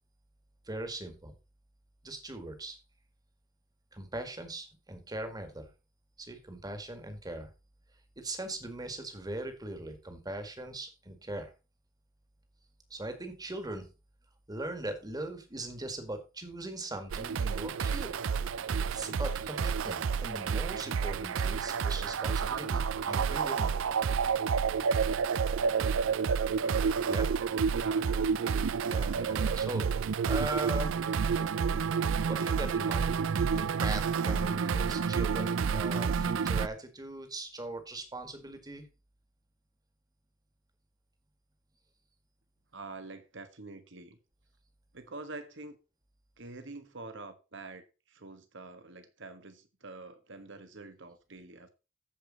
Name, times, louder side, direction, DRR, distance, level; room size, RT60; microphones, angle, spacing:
voice 1, 0.7-1.4 2.0-2.8 3.9-5.7 6.2-7.5 8.2-11.5 12.9-13.9 14.5-18.1 18.9-23.7 27.1-27.3 28.9-29.9 30.2-31.0 32.3-33.1 33.4-38.8, right 2 dB, 20° right, 1.9 m, -40 dB
sound 1, 17.1-36.7, right 6 dB, 90° right, 0.4 m, -29 dB
voice 2, 27.7-29.0 42.7-44.2 44.9-45.8 46.4-51.7, right 3 dB, 65° right, 1.5 m, -46 dB
14.0 x 5.1 x 4.0 m
head